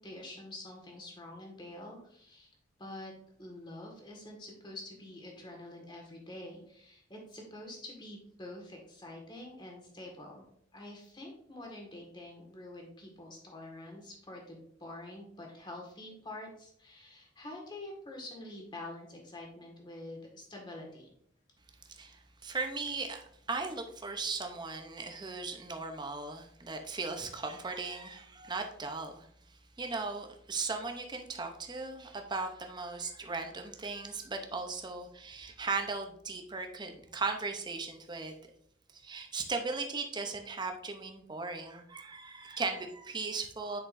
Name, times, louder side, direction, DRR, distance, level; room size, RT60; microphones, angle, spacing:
voice 1, 0.0-2.5 2.8-3.1 3.4-10.4 10.7-21.1, left 1 dB, 25° left, 0 dB, 1.7 m, -46 dB
voice 2, 21.9-38.4 38.9-43.8, right 4 dB, 20° right, 5 dB, 0.7 m, -37 dB
8.0 x 6.0 x 2.6 m, 0.68 s
head